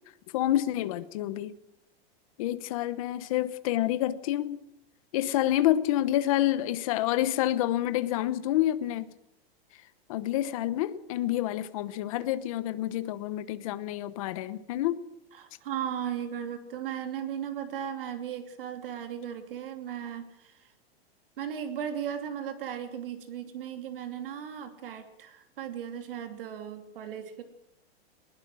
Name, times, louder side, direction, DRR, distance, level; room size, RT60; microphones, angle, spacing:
voice 1, 0.3-1.5 2.4-4.6 5.1-9.1 10.1-15.1, left 13 dB, 35° left, 1.0 m, -28 dB
voice 2, 15.3-20.7 21.4-27.4, right 9 dB, 60° right, 2.9 m, -36 dB
21.0 x 20.0 x 6.3 m
supercardioid pair, 175°, 31 cm